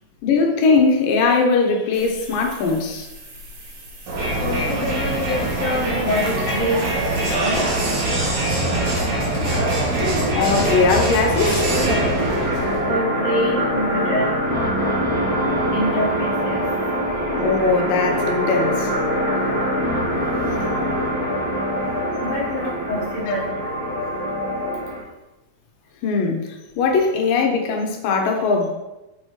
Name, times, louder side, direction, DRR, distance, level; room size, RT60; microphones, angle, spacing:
voice 1, 0.2-3.1 10.3-11.7 14.8-14.9 17.3-18.9 26.0-28.7, left 4 dB, 75° left, 2 dB, 2.5 m, -20 dB
sound 1, 1.9-7.4, equal, 80° right, 3.7 m, -39 dB
Crowd, 4.1-12.9, right 1 dB, 55° right, 3.4 m, -22 dB
voice 2, 4.3-7.6 12.9-14.3 15.7-16.6 22.2-23.6, left 1 dB, 55° left, -2 dB, 2.2 m, -26 dB
sound 2, 11.7-25.0, equal, 30° right, 2.2 m, -23 dB
6.5 x 6.1 x 4.6 m, 1.0 s
omnidirectional pair, 4.1 m